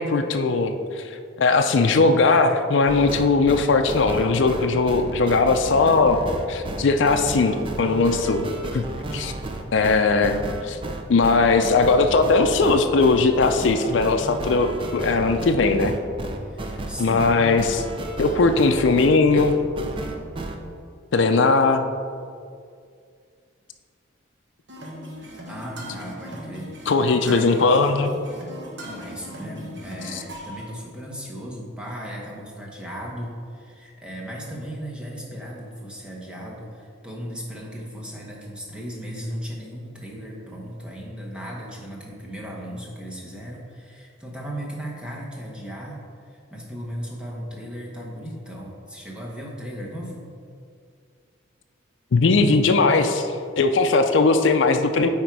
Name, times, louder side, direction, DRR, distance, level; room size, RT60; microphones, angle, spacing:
voice 1, 0.0-6.2 6.5-8.9 9.1-9.3 9.7-10.8 11.1-16.0 17.0-17.8 18.2-19.6 21.1-21.8 26.9-28.1 30.1-30.2 52.1-55.1, left 3 dB, 70° left, 6 dB, 0.4 m, -19 dB
sound 1, 2.9-20.6, right 2 dB, 25° right, 0.4 m, -32 dB
voice 2, 16.4-17.2 25.2-26.9 27.2-27.7 28.8-50.3, equal, 5° right, -3 dB, 0.9 m, -36 dB
sound 2, 24.7-30.6, equal, 60° right, 1.2 m, -39 dB
9.1 x 3.7 x 4.6 m, 2.3 s
head